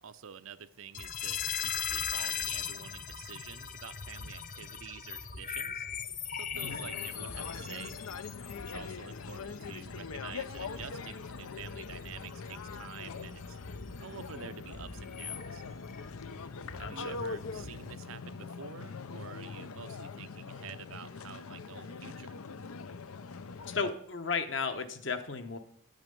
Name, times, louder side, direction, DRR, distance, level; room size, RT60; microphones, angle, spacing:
voice 1, 0.0-5.9 6.3-8.0 8.7-13.6 14.0-15.6 16.8-22.4, right 7 dB, 75° right, 12 dB, 0.6 m, -48 dB
sound 1, 0.9-18.0, left 7 dB, 40° left, 0.7 m, -40 dB
sound 2, 6.5-23.9, left 5 dB, 90° left, 0.6 m, -43 dB
voice 2, 16.7-17.1 23.6-25.6, left 5 dB, 60° left, 8 dB, 1.1 m, -34 dB
9.4 x 9.0 x 5.3 m, 0.67 s
head